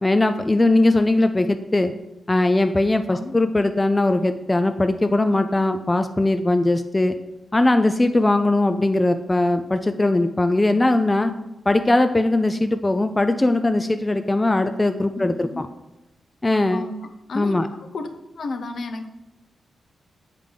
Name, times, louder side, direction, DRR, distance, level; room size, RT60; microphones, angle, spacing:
voice 1, 0.0-1.9 2.3-7.2 7.5-11.3 11.7-15.7 16.4-16.9 17.3-17.7, left 2 dB, 20° left, 8 dB, 0.4 m, -20 dB
voice 2, 15.1-15.6 16.7-17.5 17.8-18.1 18.4-19.1, left 3 dB, 70° left, 6 dB, 0.7 m, -33 dB
7.3 x 3.6 x 5.1 m, 0.95 s
cardioid pair, 75°, 0 cm